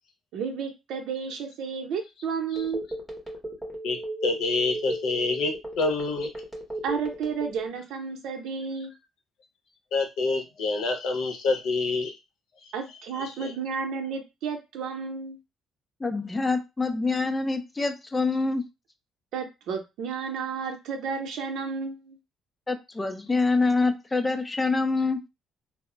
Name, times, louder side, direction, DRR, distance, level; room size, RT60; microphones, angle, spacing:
voice 1, 0.3-2.8 6.8-8.9 12.7-15.4 19.3-22.2, right 5 dB, 75° right, 0.7 m, -32 dB
Telephone, 2.6-7.8, right 1 dB, 5° right, 0.7 m, -35 dB
voice 2, 3.8-6.3 9.9-12.1, left 3 dB, 75° left, 0.7 m, -27 dB
voice 3, 16.0-18.7 22.7-25.2, left 3 dB, 15° left, 0.3 m, -25 dB
2.2 x 2.0 x 3.7 m
cardioid pair, 155°, 0 cm